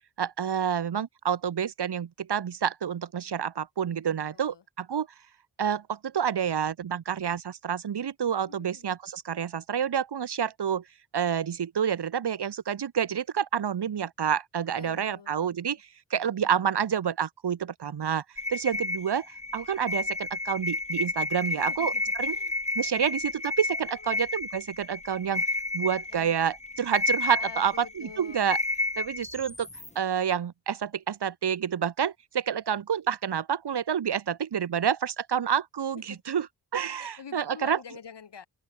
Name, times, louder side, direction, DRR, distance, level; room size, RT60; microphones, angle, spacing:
voice 1, 0.2-5.1 5.6-10.8 11.1-15.8 16.1-18.2 18.5-19.3 19.5-21.9 22.2-22.4 22.8-25.4 25.7-28.6 29.0-29.7 30.0-36.5 36.7-37.8, right 8 dB, 65° right, 1.7 m, -28 dB
voice 2, 4.0-4.6 8.5-8.9 14.8-15.6 21.5-23.1 23.8-24.3 26.1-26.4 27.4-28.6 35.9-36.4 37.0-38.5, left 7 dB, 70° left, 7.3 m, -47 dB
sound 1, 18.4-29.9, left 2 dB, 15° left, 1.8 m, -31 dB
open air
supercardioid pair, 45°, 43 cm